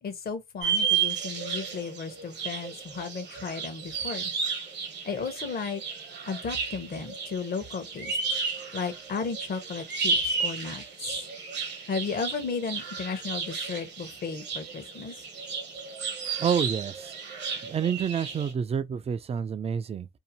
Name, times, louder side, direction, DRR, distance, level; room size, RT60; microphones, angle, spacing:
voice 1, 0.0-4.3 5.0-5.8 6.3-8.1 8.7-11.2 11.9-15.1, left 5 dB, 50° left, 0.8 m, -34 dB
sound 1, 0.6-18.5, right 5 dB, 60° right, 0.9 m, -33 dB
voice 2, 16.4-17.1 17.6-20.1, right 7 dB, 30° right, 0.3 m, -28 dB
2.7 x 2.0 x 2.8 m
cardioid pair, 90°, 20 cm